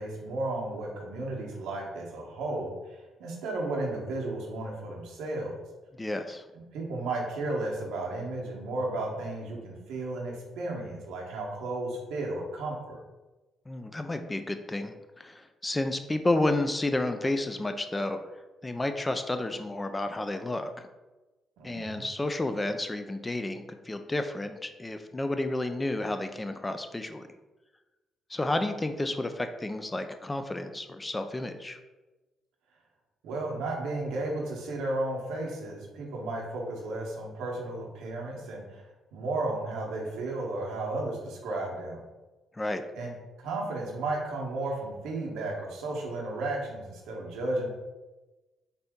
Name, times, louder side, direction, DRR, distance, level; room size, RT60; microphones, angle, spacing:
voice 1, 0.0-5.5 6.5-13.0 21.6-22.1 33.2-42.0 42.9-43.1 43.4-47.7, right 2 dB, 90° right, -1 dB, 1.0 m, -34 dB
voice 2, 6.0-6.4 13.7-18.2 18.6-20.9 21.6-27.2 28.3-31.8 42.5-42.8, left 2 dB, 15° left, 8 dB, 0.3 m, -31 dB
4.2 x 2.6 x 3.5 m, 1.1 s
cardioid pair, 90°, 0 cm